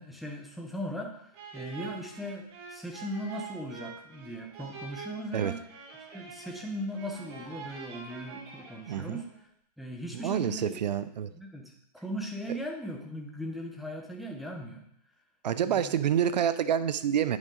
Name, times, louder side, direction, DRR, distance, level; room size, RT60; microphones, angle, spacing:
voice 1, 0.0-5.6 6.1-9.5 9.8-10.9 11.3-14.8 15.6-15.9, equal, ahead, 1 dB, 0.7 m, -38 dB
sound 1, 1.3-9.4, right 5 dB, 40° right, 1.4 m, -45 dB
voice 2, 8.9-9.2 10.2-11.3 15.4-17.4, right 9 dB, 80° right, 14 dB, 0.6 m, -27 dB
9.2 x 5.3 x 3.8 m, 0.72 s
hypercardioid pair, 155°, 21 cm